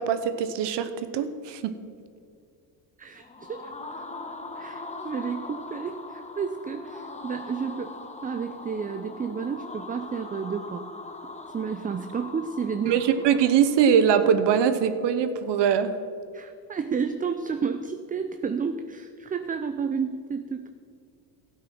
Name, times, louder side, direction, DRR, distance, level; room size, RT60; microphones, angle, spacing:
voice 1, 0.0-1.7 12.9-16.0, right 8 dB, 55° right, 11 dB, 1.0 m, -22 dB
voice 2, 3.0-4.0 4.6-10.9 11.5-13.0 16.3-20.7, right 6 dB, 20° right, 9 dB, 0.5 m, -31 dB
sound 1, 3.1-14.0, left 3 dB, 15° left, 1.2 m, -41 dB
12.5 x 8.6 x 6.1 m, 2.3 s
supercardioid pair, 80°, 49 cm